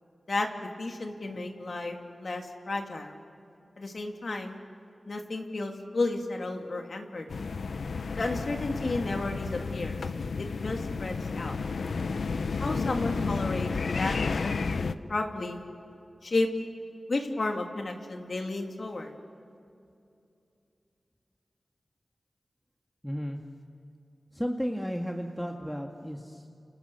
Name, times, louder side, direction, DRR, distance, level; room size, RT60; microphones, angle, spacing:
voice 1, 0.3-3.2 3.8-4.6 5.1-7.3 8.2-10.0 10.4-11.6 12.6-15.6 16.2-16.5 17.1-19.1, left 2 dB, 65° left, 3 dB, 2.6 m, -32 dB
sound 1, 7.3-14.9, left 4 dB, 85° left, 0.7 m, -32 dB
voice 2, 23.0-23.4 24.3-26.5, equal, 5° left, 2 dB, 1.9 m, -33 dB
29.0 x 28.0 x 7.0 m, 2.6 s
cardioid pair, 55°, 0 cm